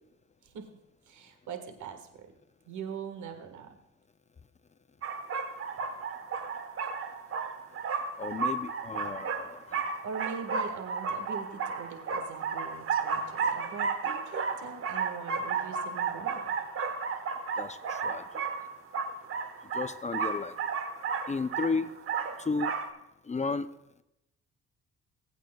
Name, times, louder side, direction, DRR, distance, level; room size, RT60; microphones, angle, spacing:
voice 1, 1.1-2.3 2.6-3.8 10.0-16.5, right 6 dB, 75° right, 6 dB, 1.5 m, -42 dB
sound 1, 5.0-22.9, right 5 dB, 45° right, 1.1 m, -33 dB
voice 2, 8.2-9.8 17.6-18.2 19.7-20.5 21.3-21.9 22.4-22.7 23.3-23.7, left 4 dB, 25° left, 12 dB, 0.5 m, -33 dB
19.5 x 8.3 x 2.3 m, 0.86 s
cardioid pair, 90°, 30 cm